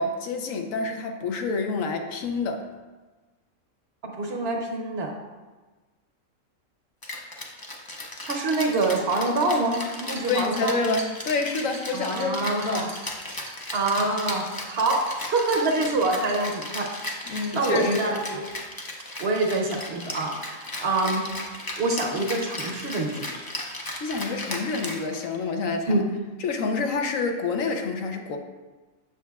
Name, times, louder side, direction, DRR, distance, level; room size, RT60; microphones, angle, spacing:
voice 1, 0.0-2.6 10.3-12.9 17.3-18.1 24.0-26.0 26.4-28.4, left 3 dB, 75° left, 4 dB, 1.1 m, -28 dB
voice 2, 4.0-5.1 8.2-10.8 11.9-12.9 13.7-16.9 17.2-18.4 19.2-21.2 21.8-23.3 25.9-26.1, right 2 dB, 55° right, 1 dB, 0.9 m, -26 dB
Rattle (instrument), 7.0-25.5, left 1 dB, 25° left, 0.4 m, -36 dB
sound 1, 8.7-18.6, right 3 dB, 80° right, 1.5 m, -46 dB
7.4 x 6.8 x 2.3 m, 1.3 s
omnidirectional pair, 1.4 m